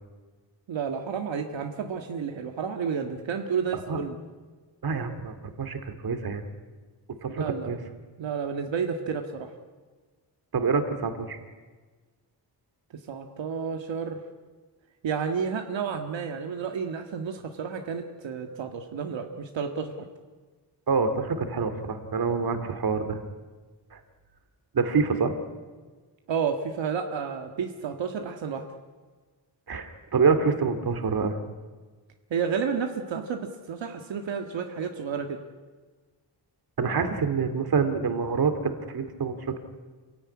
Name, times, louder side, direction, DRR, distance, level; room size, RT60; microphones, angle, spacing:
voice 1, 0.7-4.2 7.3-7.7 8.2-9.5 13.1-14.2 15.0-19.9 26.3-28.6 32.3-33.4 33.7-35.4, right 6 dB, 80° right, 4 dB, 1.8 m, -31 dB
voice 2, 4.8-6.4 7.2-7.8 10.5-11.4 20.9-23.2 23.9-24.0 24.7-25.4 29.7-31.4 36.8-39.6, right 5 dB, 55° right, 8 dB, 2.5 m, -26 dB
27.5 x 16.5 x 9.8 m, 1.4 s
wide cardioid pair, 135°, 44 cm